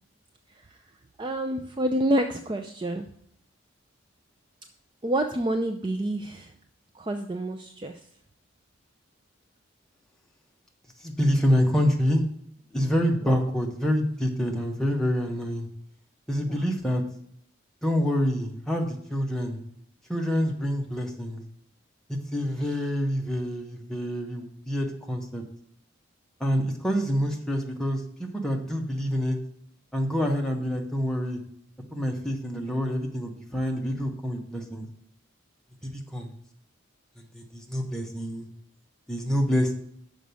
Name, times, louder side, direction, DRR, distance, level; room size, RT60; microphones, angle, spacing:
voice 1, 0.5-3.1 5.0-6.5 6.9-8.1 13.2-13.5 16.5-16.7 22.6-22.7, right 1 dB, 25° right, 6 dB, 0.4 m, -29 dB
voice 2, 11.0-12.2 12.7-15.7 16.3-17.0 17.8-19.6 20.1-21.4 22.1-25.4 26.4-29.4 29.9-31.4 31.9-34.9 35.8-36.3 37.3-38.5 39.1-39.7, equal, 5° left, 0 dB, 1.0 m, -27 dB
6.3 x 5.1 x 6.8 m, 0.70 s
head